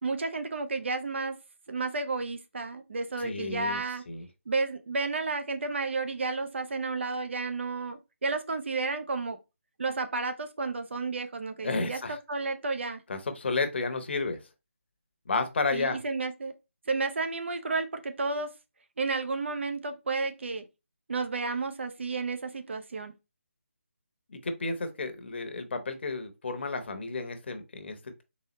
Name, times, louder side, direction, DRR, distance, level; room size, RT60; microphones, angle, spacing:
voice 1, 0.0-1.4 1.7-4.0 4.5-9.4 9.8-13.0 15.7-16.5 16.9-18.5 19.0-20.7 21.1-23.1, right 3 dB, 55° right, 0.7 m, -32 dB
voice 2, 3.2-3.8 4.1-4.3 11.6-12.2 13.1-14.4 15.3-16.0 24.3-28.2, left 3 dB, 50° left, 0.9 m, -32 dB
4.1 x 3.5 x 3.0 m
figure-of-eight pair, 160°, 7 cm